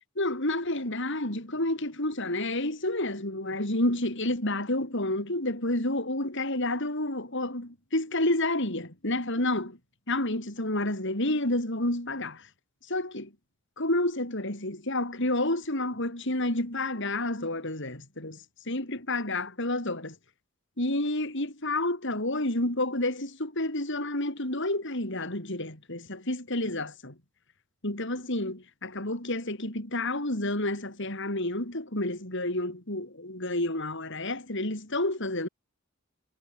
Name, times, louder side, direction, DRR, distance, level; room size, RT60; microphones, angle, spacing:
voice 1, 0.0-9.8 10.1-12.5 12.9-13.3 13.8-18.4 18.7-20.1 20.8-27.1 27.8-35.5, left 1 dB, 60° left, 6.3 m, -30 dB
head